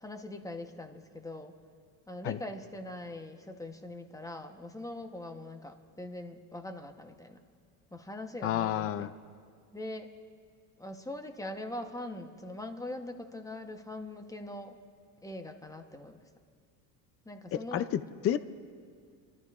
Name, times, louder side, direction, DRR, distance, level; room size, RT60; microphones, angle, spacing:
voice 1, 0.0-1.5 2.1-7.4 7.9-9.1 9.7-10.1 10.8-14.8 15.2-16.2 17.2-17.9, left 1 dB, 5° left, 5 dB, 0.9 m, -42 dB
voice 2, 8.4-9.1 17.5-18.4, left 11 dB, 30° left, 13 dB, 0.4 m, -30 dB
29.0 x 13.0 x 2.4 m, 2.2 s
supercardioid pair, 115°, 46 cm